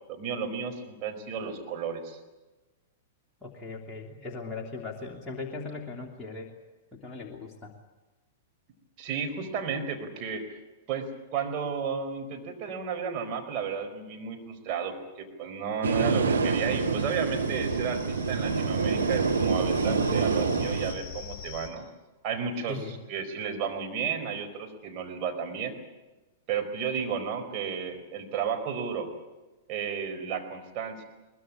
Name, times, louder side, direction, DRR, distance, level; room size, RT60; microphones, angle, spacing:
voice 1, 0.1-2.2 9.0-10.5 10.9-21.9 22.2-22.8 23.1-25.8 26.5-29.1 29.7-31.0, right 6 dB, 35° right, 3 dB, 4.5 m, -33 dB
voice 2, 3.4-6.5 6.9-7.7 21.8-21.9 22.7-23.0, left 3 dB, 15° left, -2 dB, 2.9 m, -39 dB
sound 1, 15.8-20.9, right 4 dB, 75° right, 2.0 m, -26 dB
sound 2, 16.3-21.7, left 9 dB, 35° left, 3.5 m, -44 dB
22.5 x 20.5 x 8.7 m, 1.1 s
figure-of-eight pair, 100°, 0 cm